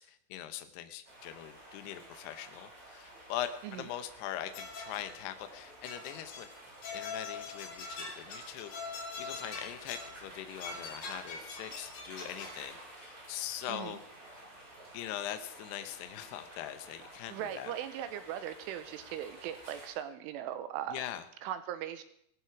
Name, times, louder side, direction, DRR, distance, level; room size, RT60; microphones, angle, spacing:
voice 1, 0.0-6.5 6.9-14.0 14.3-14.4 14.9-17.7 20.9-21.2, left 12 dB, 70° left, 9 dB, 2.7 m, -42 dB
sound 1, 1.0-19.9, right 1 dB, 15° right, 7.2 m, -52 dB
sound 2, 4.5-5.2 5.8-6.6 6.8-10.2 10.6-12.6, left 4 dB, 55° left, 4.7 m, -43 dB
voice 2, 13.7-14.0 17.3-21.0 21.4-22.0, right 11 dB, 80° right, 11 dB, 3.3 m, -39 dB
18.5 x 14.5 x 4.8 m, 0.70 s
omnidirectional pair, 5.8 m